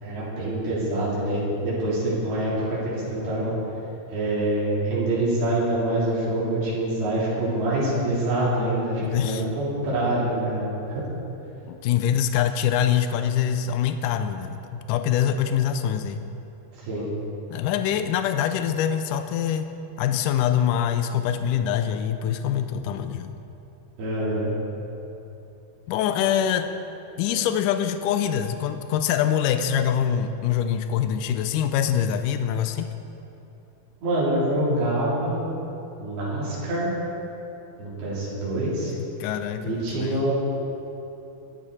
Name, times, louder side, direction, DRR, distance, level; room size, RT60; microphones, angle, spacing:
voice 1, 0.0-3.5 4.1-11.1 16.8-17.1 24.0-24.5 34.0-35.4 36.0-36.9 37.8-38.9 39.6-40.3, right 1 dB, 70° right, -8 dB, 5.7 m, -25 dB
voice 2, 9.0-9.4 11.7-16.2 17.5-23.4 25.9-26.7 27.2-32.9 39.2-40.2, left 9 dB, 90° left, 8 dB, 1.8 m, -24 dB
22.0 x 11.5 x 4.2 m, 3.0 s
omnidirectional pair, 4.5 m